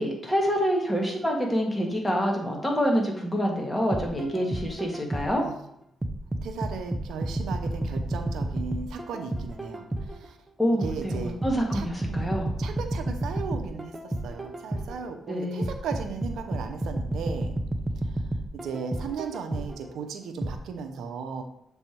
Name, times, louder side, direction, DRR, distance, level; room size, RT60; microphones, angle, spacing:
voice 1, 0.0-5.5 10.6-12.5 15.3-15.7, equal, 15° left, 0 dB, 1.8 m, -27 dB
sound 1, 3.9-5.5 6.0-10.3 10.8-15.1 15.6-19.9 20.4-20.6, right 1 dB, 15° right, 0.7 m, -31 dB
voice 2, 6.4-10.4 10.8-11.4 11.7-17.5 18.0-18.3 18.5-21.4, right 5 dB, 80° right, 5 dB, 0.7 m, -36 dB
6.9 x 3.4 x 4.4 m, 0.75 s
cardioid pair, 70°, 0 cm